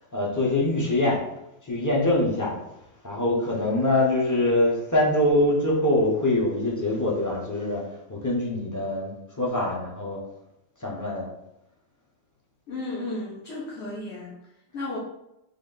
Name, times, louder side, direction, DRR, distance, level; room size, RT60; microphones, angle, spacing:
voice 1, 0.1-1.2 1.6-2.6 3.0-7.8 8.1-10.2 10.8-11.3, left 1 dB, 20° left, -4 dB, 0.6 m, -24 dB
voice 2, 12.7-14.4 14.7-15.0, left 2 dB, 55° left, -6 dB, 1.0 m, -33 dB
3.6 x 2.5 x 3.8 m, 0.86 s
omnidirectional pair, 1.4 m